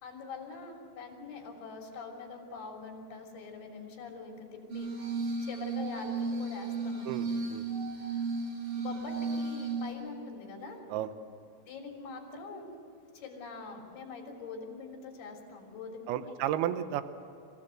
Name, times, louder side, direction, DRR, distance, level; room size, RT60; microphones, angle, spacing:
voice 1, 0.0-7.3 8.8-10.8 11.7-12.7 13.1-16.4, left 4 dB, 75° left, 1 dB, 5.3 m, -44 dB
Glass, 4.7-9.9, right 3 dB, 55° right, 7.1 m, -34 dB
voice 2, 7.1-7.7 10.9-11.1 16.1-17.0, right 11 dB, 80° right, 11 dB, 2.7 m, -32 dB
25.0 x 16.0 x 7.8 m, 2.6 s
omnidirectional pair, 4.7 m